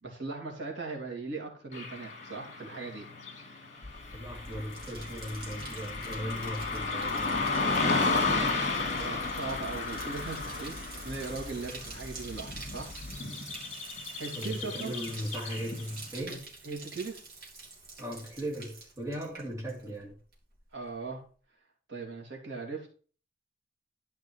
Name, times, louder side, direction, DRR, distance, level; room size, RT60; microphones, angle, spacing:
voice 1, 0.0-3.1 8.0-12.9 14.2-14.9 16.6-17.3 20.7-21.2 21.9-22.9, right 3 dB, 75° right, 3.0 m, -39 dB
Car passing by / Traffic noise roadway noise, 1.7-16.0, left 3 dB, 40° left, 2.5 m, -34 dB
sound 1, 3.8-13.2, left 1 dB, 20° left, 1.1 m, -47 dB
Bathtub (filling or washing), 4.0-20.1 20.3-20.9, right 3 dB, 60° right, 3.3 m, -48 dB
voice 2, 4.1-7.5 14.3-16.5 18.0-20.2, equal, 15° right, 2.7 m, -38 dB
12.0 x 5.4 x 4.6 m
head